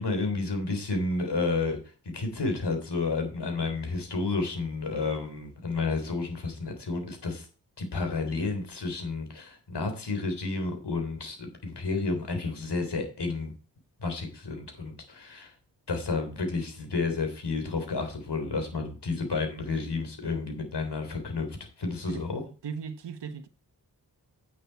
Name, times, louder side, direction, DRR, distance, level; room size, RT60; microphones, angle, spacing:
voice 1, 0.0-1.8 2.1-7.5 7.8-13.5 14.0-15.5 15.9-22.4, left 3 dB, 75° left, 3.4 m, -31 dB
voice 2, 22.6-23.5, right 6 dB, 85° right, 1.1 m, -37 dB
9.5 x 8.6 x 4.5 m
cardioid pair, 45°, 41 cm